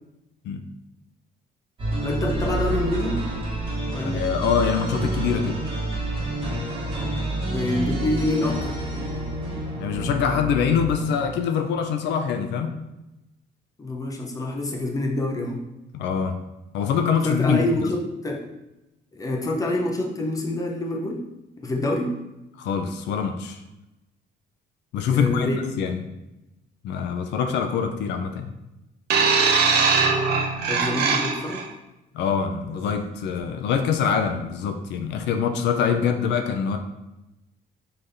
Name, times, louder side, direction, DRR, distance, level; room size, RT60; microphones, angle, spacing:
sound 1, 1.8-11.6, right 1 dB, 30° right, 1.5 m, -28 dB
voice 1, 2.0-3.3 3.9-4.3 7.5-8.8 13.8-15.6 17.2-18.4 19.1-21.3 21.6-22.2 25.1-25.6 30.7-31.7, left 1 dB, 20° left, 0 dB, 0.7 m, -26 dB
voice 2, 4.0-5.6 9.8-12.7 15.9-16.4 16.7-17.9 22.6-23.6 24.9-26.0 26.8-28.5 32.1-36.8, left 7 dB, 80° left, 6 dB, 0.5 m, -24 dB
sound 2, 29.1-31.6 32.6-32.7, right 5 dB, 65° right, 0.6 m, -21 dB
5.8 x 3.4 x 2.6 m, 0.95 s
cardioid pair, 145°, 18 cm